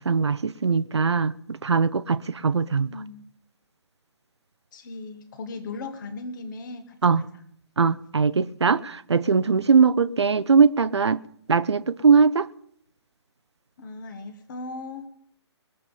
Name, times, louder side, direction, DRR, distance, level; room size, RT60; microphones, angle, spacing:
voice 1, 0.0-2.9 7.0-7.2 7.8-11.2 11.5-12.5, right 5 dB, 70° right, 0.6 m, -21 dB
voice 2, 2.8-3.3 4.7-7.2 13.8-15.1, left 3 dB, 45° left, 1.7 m, -37 dB
21.0 x 7.3 x 5.5 m
figure-of-eight pair, 135°, 15 cm